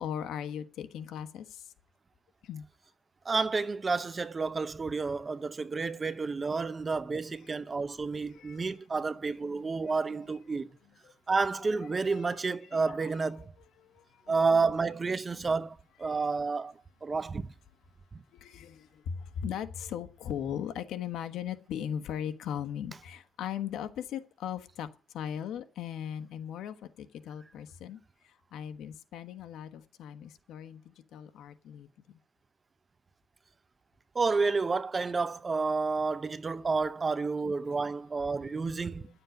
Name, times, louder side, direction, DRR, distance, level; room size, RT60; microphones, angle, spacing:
voice 1, 0.0-1.6 2.4-2.7 8.3-8.7 9.5-9.6 12.0-12.3 12.7-13.1 13.8-14.6 16.0-16.2 18.3-24.9 25.1-28.0 28.5-31.9, left 9 dB, 75° left, 1.2 m, -38 dB
voice 2, 3.2-10.7 11.3-13.5 14.3-16.7 17.0-17.5 34.1-39.1, right 4 dB, 25° right, 0.6 m, -30 dB
11.0 x 7.7 x 9.2 m
cardioid pair, 140°, 0 cm